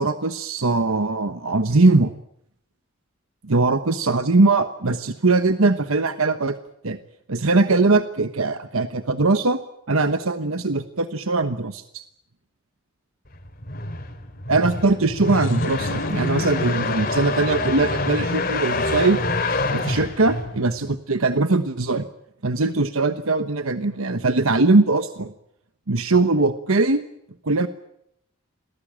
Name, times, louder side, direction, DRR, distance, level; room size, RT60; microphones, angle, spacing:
voice 1, 0.0-2.1 3.4-6.6 6.8-7.0 7.3-9.6 9.9-12.0 14.5-19.2 19.7-22.1 22.4-25.3 25.9-27.0 27.4-27.7, right 3 dB, 90° right, 10 dB, 1.2 m, -21 dB
sound 1, 13.3-20.9, left 2 dB, 45° left, 3.6 m, -26 dB
sound 2, 15.2-19.8, left 1 dB, 70° left, 2.9 m, -36 dB
27.5 x 19.5 x 8.9 m, 0.76 s
head